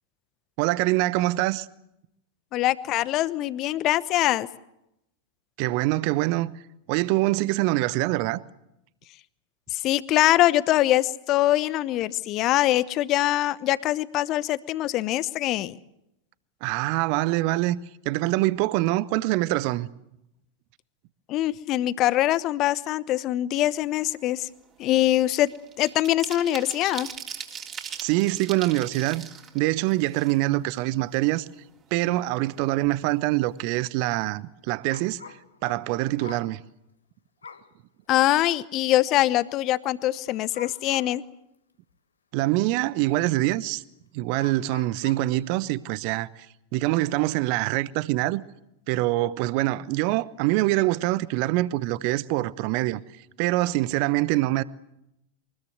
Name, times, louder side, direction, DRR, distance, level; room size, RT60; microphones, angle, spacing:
voice 1, 0.6-1.7 5.6-6.5 6.9-8.4 16.6-17.8 18.0-19.9 28.0-29.3 29.5-31.5 31.9-35.2 35.6-36.6 42.3-43.8 44.1-46.5 46.7-48.4 48.9-53.0 53.4-54.6, right 18 dB, 45° right, 0.9 m, -24 dB
voice 2, 2.5-4.5 9.7-15.8 21.3-24.5 24.8-25.5 25.8-27.1 38.1-41.2, left 14 dB, 35° left, 0.9 m, -23 dB
sound 1, 23.7-24.0 24.3-30.7 31.1-31.2 31.5-32.5 32.8-33.0 33.3-33.6, right 7 dB, 25° right, 3.5 m, -40 dB
sound 2, 34.9-36.6 37.4-37.7 38.3-38.4 40.3-41.2 41.9-42.0 43.7-43.8 44.4-45.3, left 5 dB, 75° left, 1.4 m, -45 dB
23.5 x 20.5 x 8.1 m
figure-of-eight pair, 90°, 0 cm